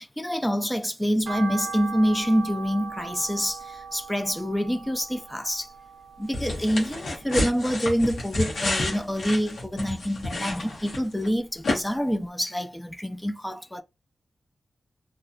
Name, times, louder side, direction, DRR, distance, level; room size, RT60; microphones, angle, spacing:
voice 1, 0.0-5.7 6.2-13.8, equal, 5° left, 0.4 m, -26 dB
sound 1, 1.2-7.6 7.9-9.1 9.4-10.8 11.2-11.3 11.8-11.9 12.1-12.2, right 4 dB, 70° right, 0.4 m, -39 dB
sound 2, 6.3-11.3 11.6-11.8, left 2 dB, 85° left, 1.0 m, -30 dB
2.8 x 2.3 x 2.3 m
wide cardioid pair, 110°, 0 cm